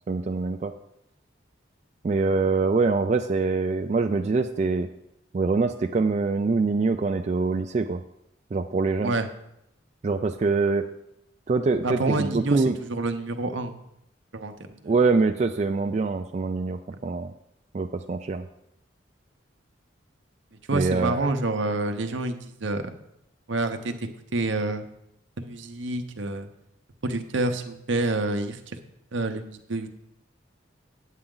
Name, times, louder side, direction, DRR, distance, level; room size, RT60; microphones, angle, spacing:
voice 1, 0.1-0.7 2.0-4.9 5.3-8.0 8.5-9.2 10.0-10.9 11.5-12.8 14.8-17.3 17.7-18.4 20.7-21.3, right 4 dB, 35° right, 5 dB, 0.3 m, -24 dB
voice 2, 11.8-12.6 12.9-13.7 14.3-14.9 20.7-22.9 23.5-23.9 24.3-24.9 25.4-26.5 27.0-28.6 29.1-29.9, right 2 dB, 75° right, 7 dB, 0.8 m, -28 dB
8.8 x 8.3 x 3.8 m, 0.80 s
head